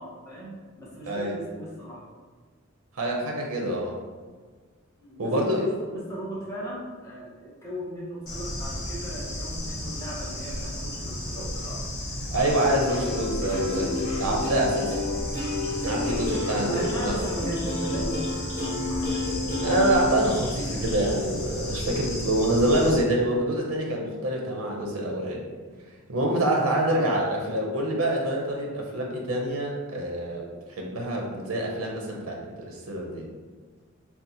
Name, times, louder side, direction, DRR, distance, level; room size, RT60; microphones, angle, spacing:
voice 1, 0.0-2.0 5.0-11.8 16.6-19.3 26.9-27.1, equal, 15° left, -6 dB, 0.7 m, -37 dB
voice 2, 1.1-1.4 2.9-4.0 5.2-5.7 12.2-15.0 15.8-17.1 19.6-25.4 26.1-33.3, right 1 dB, 80° right, 0 dB, 0.5 m, -26 dB
Bird / Insect, 8.3-23.0, left 1 dB, 80° left, 0.9 m, -33 dB
Plucked string instrument, 12.6-20.0, left 2 dB, 50° left, 0.9 m, -31 dB
2.7 x 2.1 x 3.8 m, 1.5 s
head